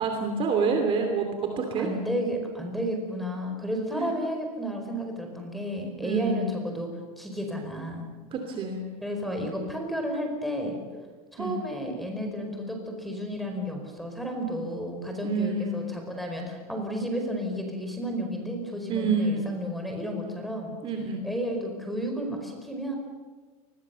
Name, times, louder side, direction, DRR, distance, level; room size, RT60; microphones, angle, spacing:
voice 1, 0.0-1.9 3.9-4.1 6.0-6.5 8.3-8.9 11.4-11.6 15.2-15.8 18.9-19.5 20.8-21.2, right 4 dB, 30° right, 4 dB, 2.8 m, -27 dB
voice 2, 1.8-6.9 7.2-8.1 9.0-10.8 11.3-20.7 21.2-23.0, equal, ahead, 3 dB, 4.7 m, -32 dB
29.0 x 21.0 x 7.0 m, 1.4 s
supercardioid pair, 155°, 19 cm